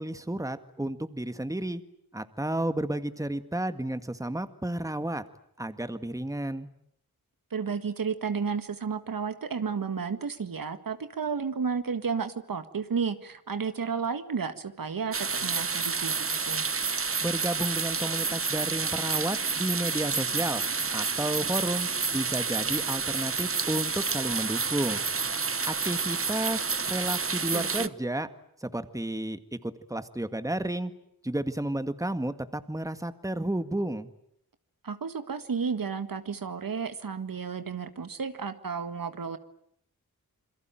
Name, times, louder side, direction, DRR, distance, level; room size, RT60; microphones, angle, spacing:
voice 1, 0.0-1.8 2.1-5.2 5.6-6.7 17.2-20.6 20.9-25.0 25.7-28.3 28.6-30.9 31.2-34.1, right 1 dB, 10° right, 11 dB, 1.9 m, -32 dB
voice 2, 7.5-16.6 27.5-27.9 34.8-39.4, right 6 dB, 65° right, 10 dB, 1.8 m, -32 dB
sound 1, 15.1-27.9, right 5 dB, 35° right, 1.1 m, -29 dB
27.5 x 22.0 x 9.1 m, 0.72 s
cardioid pair, 50°, 36 cm